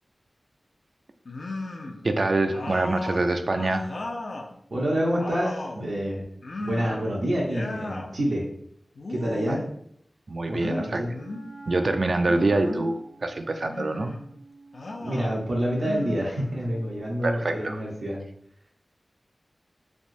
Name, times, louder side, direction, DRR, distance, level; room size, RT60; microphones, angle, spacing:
sound 1, 1.2-2.0 2.5-4.5 4.9-5.8 6.4-7.1 7.4-8.1 8.9-9.7 10.6-11.5 12.2-12.9 13.6-14.2 14.7-15.3 15.7-16.8, left 2 dB, 70° left, 0.4 m, -36 dB
voice 1, 2.0-3.9 9.5-9.6 10.3-11.0 11.7-14.2 17.2-17.8, right 2 dB, 60° right, 6 dB, 0.3 m, -25 dB
voice 2, 4.7-6.2 6.6-8.4 9.1-9.6 10.5-11.1 15.0-18.2, equal, 80° right, -4 dB, 0.7 m, -27 dB
Wind instrument woodwind instrument, 11.0-17.7, right 2 dB, 10° left, 0.5 m, -49 dB
3.4 x 2.7 x 2.5 m, 0.70 s
wide cardioid pair, 85°, 0 cm